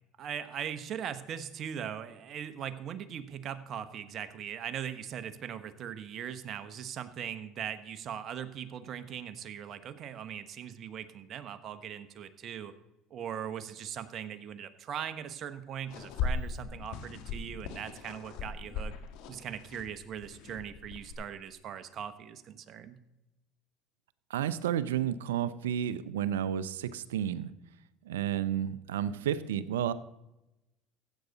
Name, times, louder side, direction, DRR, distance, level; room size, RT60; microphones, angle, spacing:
voice 1, 0.2-12.7 13.1-18.9 19.3-23.0, right 9 dB, 50° right, 11 dB, 1.1 m, -40 dB
sound 1, 15.9-21.1, left 4 dB, 70° left, 1.5 m, -38 dB
voice 2, 24.3-27.5 28.0-29.9, right 10 dB, 85° right, 16 dB, 0.6 m, -31 dB
15.5 x 8.2 x 4.0 m, 0.93 s
hypercardioid pair, 80°, 0 cm